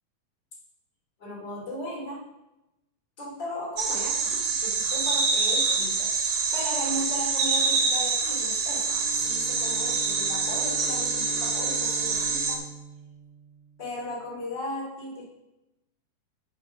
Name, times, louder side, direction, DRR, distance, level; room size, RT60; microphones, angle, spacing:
voice 1, 1.2-2.2 3.2-12.6 13.8-15.3, equal, 30° left, -4 dB, 3.1 m, -36 dB
sound 1, 3.8-12.6, right 4 dB, 60° right, 2.3 m, -26 dB
Bowed string instrument, 8.9-14.1, left 2 dB, 65° left, 2.3 m, -43 dB
7.7 x 5.8 x 6.2 m, 0.93 s
omnidirectional pair, 4.1 m